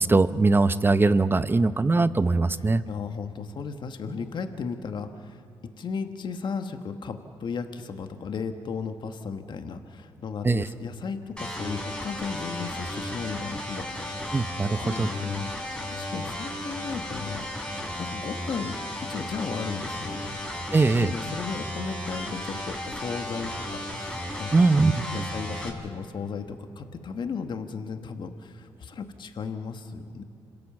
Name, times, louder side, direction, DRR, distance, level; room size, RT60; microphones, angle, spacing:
voice 1, 0.0-2.8 10.4-10.6 14.3-15.1 20.7-21.1 24.5-24.9, right 3 dB, 25° right, 14 dB, 0.8 m, -21 dB
voice 2, 2.9-5.4 5.8-17.5 18.0-20.3 20.6-24.7 25.1-30.2, left 5 dB, 55° left, 7 dB, 1.5 m, -35 dB
sound 1, 11.4-25.7, left 1 dB, 10° left, 4.3 m, -34 dB
27.0 x 16.5 x 7.3 m, 2.6 s
supercardioid pair, 65°, 10 cm